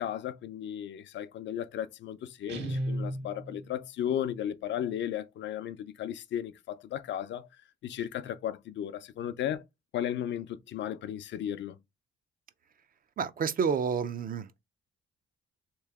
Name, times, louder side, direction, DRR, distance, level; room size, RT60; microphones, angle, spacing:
voice 1, 0.0-7.5 7.8-9.6 9.9-11.8, left 10 dB, 65° left, 0.5 m, -35 dB
Guitar, 2.5-3.8, right 1 dB, 65° right, 1.5 m, -34 dB
voice 2, 13.2-14.6, right 6 dB, 45° right, 0.5 m, -29 dB
3.2 x 3.0 x 3.5 m
cardioid pair, 90°, 20 cm